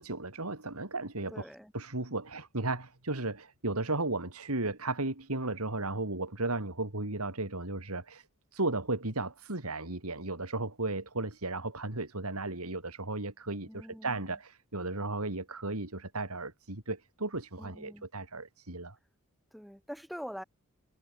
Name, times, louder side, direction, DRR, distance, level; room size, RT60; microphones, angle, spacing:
voice 1, 0.0-1.5 1.7-8.3 8.5-19.0, right 2 dB, 85° right, 3.7 m, -35 dB
voice 2, 1.3-1.7 13.7-14.3 17.6-18.1 19.5-20.4, equal, ahead, 5.4 m, -44 dB
head